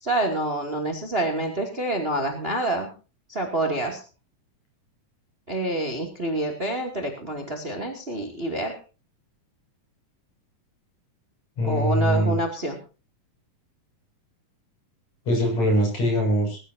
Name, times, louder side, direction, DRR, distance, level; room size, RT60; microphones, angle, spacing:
voice 1, 0.0-2.9 3.3-4.0 5.5-8.8 11.6-12.8, right 1 dB, 20° right, 5 dB, 2.5 m, -27 dB
voice 2, 11.6-12.4 15.3-16.6, equal, 55° left, 3 dB, 7.8 m, -22 dB
21.5 x 14.0 x 2.8 m, 0.33 s
omnidirectional pair, 3.8 m